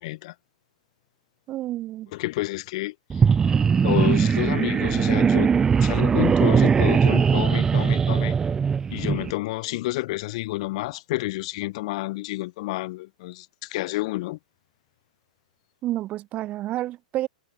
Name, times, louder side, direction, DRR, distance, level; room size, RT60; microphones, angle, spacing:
voice 1, 0.0-0.3 2.1-3.2 3.8-5.5 5.8-8.3 8.9-14.4, left 20 dB, 55° left, 3.6 m, -29 dB
voice 2, 1.5-2.1 15.8-17.3, right 15 dB, 30° right, 1.5 m, -29 dB
sound 1, 3.1-9.3, right 6 dB, 15° right, 0.5 m, -20 dB
hypercardioid pair, 125°, 4 cm